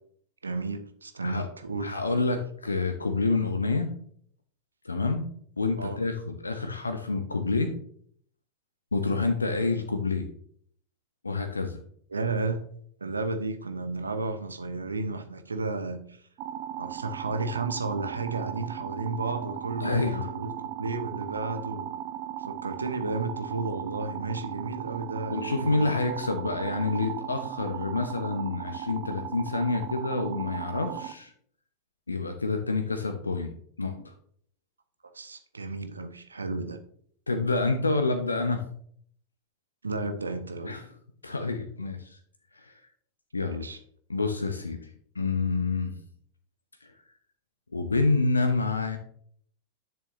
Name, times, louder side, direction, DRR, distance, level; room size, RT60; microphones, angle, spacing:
voice 1, 0.4-2.0 5.8-6.0 12.1-12.6 13.0-16.2 16.8-20.5 20.8-21.9 22.4-26.0 35.1-36.8 39.8-40.8 43.6-43.8, right 3 dB, 75° right, 8 dB, 1.0 m, -33 dB
voice 2, 1.8-3.9 4.8-5.2 5.6-7.7 8.9-10.3 11.2-11.8 19.8-20.3 25.3-31.3 32.1-34.1 37.3-38.7 40.6-40.9 41.2-42.2 42.5-42.9 43.3-43.7 44.1-44.9 45.1-46.0 46.8-47.0 47.7-49.0, left 3 dB, 80° left, 7 dB, 0.8 m, -28 dB
sound 1, 16.4-31.1, right 11 dB, 45° right, 0.8 m, -37 dB
10.5 x 6.8 x 3.1 m, 0.63 s
figure-of-eight pair, 90°, 0 cm